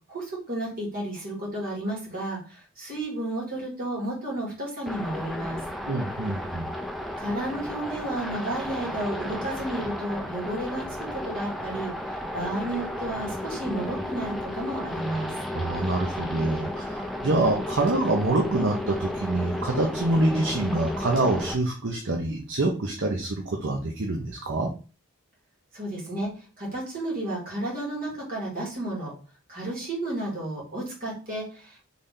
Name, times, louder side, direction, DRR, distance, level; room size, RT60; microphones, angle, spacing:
voice 1, 0.1-5.6 7.2-10.9 11.1-15.3 25.7-29.1 29.5-31.9, right 1 dB, 40° right, -4 dB, 2.2 m, -32 dB
sound 1, 4.9-21.5, left 1 dB, ahead, 0.4 m, -33 dB
voice 2, 5.9-6.6 15.5-24.7, right 2 dB, 60° right, 1 dB, 0.7 m, -26 dB
4.0 x 3.3 x 3.7 m, 0.35 s
head